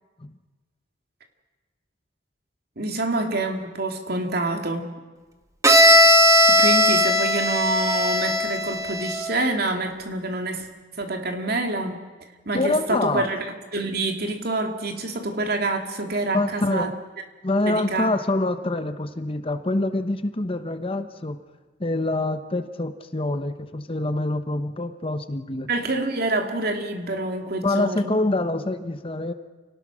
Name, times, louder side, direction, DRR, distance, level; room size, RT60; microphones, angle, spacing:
voice 1, 2.8-4.9 6.5-10.7 10.9-12.0 12.4-13.4 13.7-16.9 17.6-18.1 25.7-28.1, right 2 dB, 55° right, 4 dB, 2.7 m, -27 dB
Bowed string instrument, 5.6-9.4, equal, 15° right, 1.7 m, -18 dB
voice 2, 12.5-13.3 16.3-16.9 17.4-21.4 21.8-25.7 27.6-29.3, left 2 dB, 30° left, 9 dB, 0.9 m, -25 dB
28.5 x 18.5 x 6.2 m, 1.3 s
head